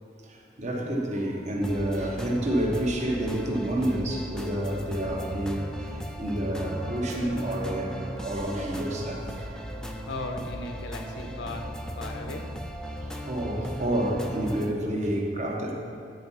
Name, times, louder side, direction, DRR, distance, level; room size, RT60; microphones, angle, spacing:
voice 1, 0.2-10.0 12.9-15.7, right 1 dB, 40° right, 0 dB, 1.1 m, -29 dB
sound 1, 1.6-14.7, equal, 5° left, 0.4 m, -37 dB
sound 2, 6.6-10.4 14.0-14.1, right 3 dB, 70° right, 0.7 m, -45 dB
voice 2, 10.1-12.5, left 2 dB, 85° left, 4 dB, 0.9 m, -37 dB
9.4 x 4.5 x 5.6 m, 2.7 s
head